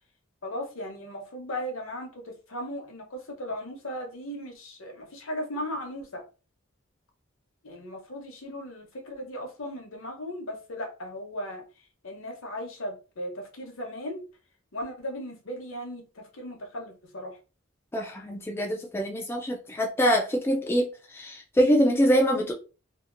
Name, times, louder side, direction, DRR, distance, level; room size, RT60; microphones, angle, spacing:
voice 1, 0.4-6.2 7.6-11.6 12.0-14.2 14.7-17.4, equal, 70° left, 0.9 m, -37 dB
voice 2, 17.9-22.5, equal, 10° left, 0.3 m, -24 dB
2.8 x 2.4 x 2.5 m
head